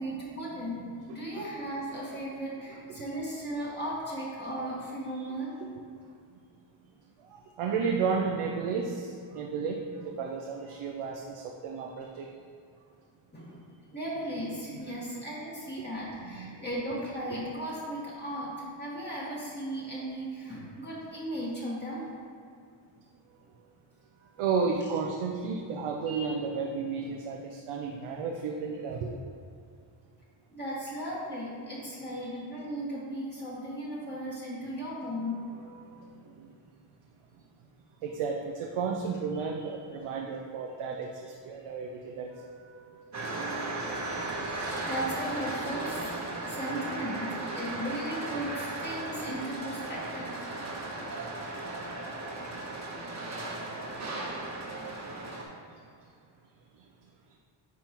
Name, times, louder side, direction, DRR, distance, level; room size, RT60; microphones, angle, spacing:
voice 1, 0.0-5.6 13.3-13.6 13.9-22.1 30.5-35.4 40.8-41.0 44.7-50.5, equal, 20° left, -7 dB, 1.4 m, -36 dB
voice 2, 7.6-11.2 11.6-12.3 14.7-14.8 16.3-16.6 24.4-29.1 32.1-32.3 35.9-36.0 38.0-41.1 41.4-43.0, right 5 dB, 85° right, 1 dB, 0.7 m, -32 dB
sound 1, 43.1-55.4, right 2 dB, 35° right, 1.0 m, -36 dB
10.5 x 3.6 x 3.0 m, 2.3 s
cardioid pair, 125°, 50 cm